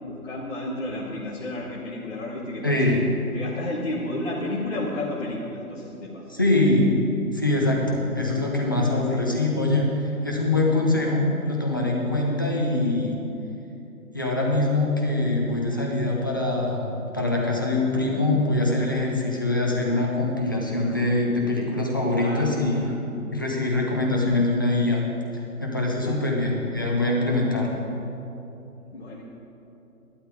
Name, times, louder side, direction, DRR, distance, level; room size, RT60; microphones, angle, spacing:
voice 1, 0.0-3.0 3.3-6.3 8.2-8.4 8.7-9.3 22.1-22.5 24.1-24.4 26.0-26.3 28.9-29.2, left 2 dB, 40° left, -7 dB, 1.9 m, -32 dB
voice 2, 2.6-3.0 6.3-6.9 7.3-13.2 14.1-22.9 23.3-25.0 25.6-27.8, left 2 dB, 15° left, -2 dB, 0.7 m, -23 dB
12.5 x 11.5 x 4.9 m, 2.9 s
figure-of-eight pair, 155°, 45 cm